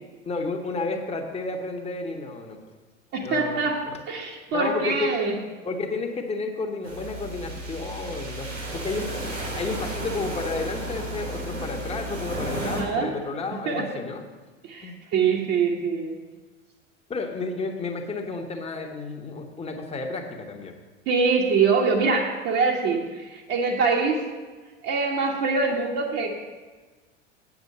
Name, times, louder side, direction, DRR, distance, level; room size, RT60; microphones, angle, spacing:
voice 1, 0.2-2.6 3.2-4.0 4.5-5.1 5.6-14.2 14.8-14.9 17.1-20.7, left 3 dB, 15° left, 2 dB, 1.3 m, -32 dB
voice 2, 3.1-5.4 12.5-13.1 13.5-13.9 14.6-16.2 21.0-24.2 24.8-26.4, right 4 dB, 45° right, -3 dB, 1.5 m, -24 dB
sound 1, 6.8-12.8, right 1 dB, 80° right, 3.6 m, -33 dB
8.7 x 7.2 x 6.7 m, 1.3 s
figure-of-eight pair, 80°, 36 cm